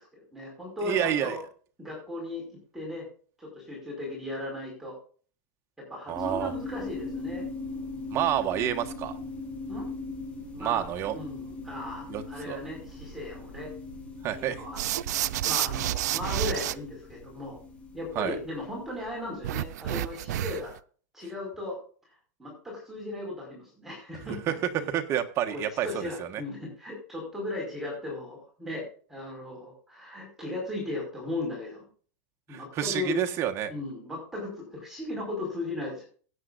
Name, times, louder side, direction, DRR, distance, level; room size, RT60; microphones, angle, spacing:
voice 1, 0.0-1.4 1.8-3.1 3.4-5.0 5.8-7.5 9.7-9.9 10.5-10.9 11.1-13.7 14.3-14.8 15.5-17.6 17.9-20.7 21.1-21.8 22.4-24.6 25.5-31.9 32.5-33.2 33.7-36.0, left 2 dB, 5° right, -2 dB, 5.2 m, -37 dB
voice 2, 0.8-1.4 6.1-6.5 8.1-9.2 10.6-11.1 12.1-12.6 14.2-14.6 18.1-18.3 24.7-26.4 32.5-33.7, right 10 dB, 35° right, 5 dB, 1.5 m, -29 dB
sound 1, 6.1-19.6, left 3 dB, 15° left, 6.2 m, -40 dB
sound 2, 14.8-16.7 19.4-20.8, right 13 dB, 85° right, 0.5 m, -29 dB
16.5 x 9.3 x 2.6 m, 0.41 s
supercardioid pair, 145°, 9 cm